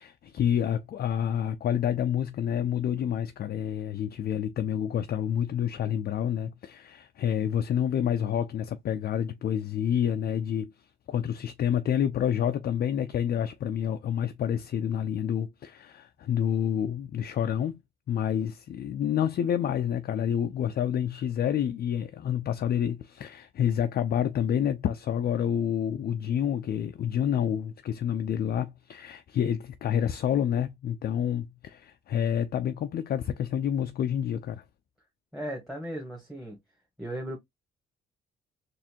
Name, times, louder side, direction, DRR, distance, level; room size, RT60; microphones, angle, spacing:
voice 1, 0.0-10.7 11.1-17.8 18.1-34.6, left 9 dB, 50° left, 0.4 m, -28 dB
voice 2, 35.3-36.6 37.0-37.4, right 1 dB, ahead, 1.3 m, -36 dB
4.2 x 2.6 x 2.8 m
cardioid pair, 90°, 20 cm